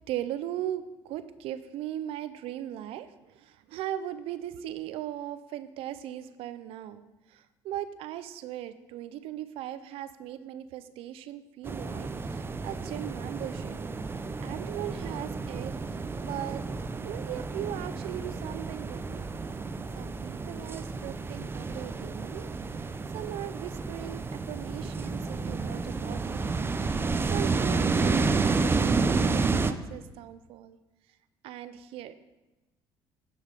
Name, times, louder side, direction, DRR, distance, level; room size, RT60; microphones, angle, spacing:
voice 1, 0.1-3.1 3.3-7.0 7.3-13.8 14.4-16.0 16.2-16.6 17.0-19.2 20.0-22.5 23.1-26.4 27.3-30.8 31.4-32.1, right 12 dB, 75° right, 13 dB, 0.5 m, -38 dB
sound 1, 11.6-29.7, right 4 dB, 25° right, 0.5 m, -30 dB
9.5 x 5.5 x 5.2 m, 1.1 s
supercardioid pair, 85°, 10 cm